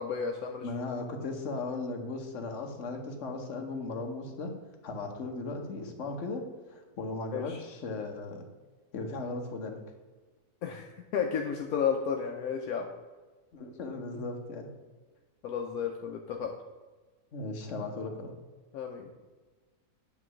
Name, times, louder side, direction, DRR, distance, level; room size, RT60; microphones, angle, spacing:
voice 1, 0.0-0.7 7.3-7.6 10.6-12.9 15.4-16.5 18.7-19.1, left 7 dB, 75° left, 2 dB, 1.1 m, -32 dB
voice 2, 0.6-4.5 4.8-6.4 6.7-8.4 8.9-9.8 13.5-14.7 17.3-18.3, left 3 dB, 55° left, 3 dB, 1.3 m, -37 dB
8.8 x 3.2 x 6.1 m, 1.3 s
omnidirectional pair, 1.6 m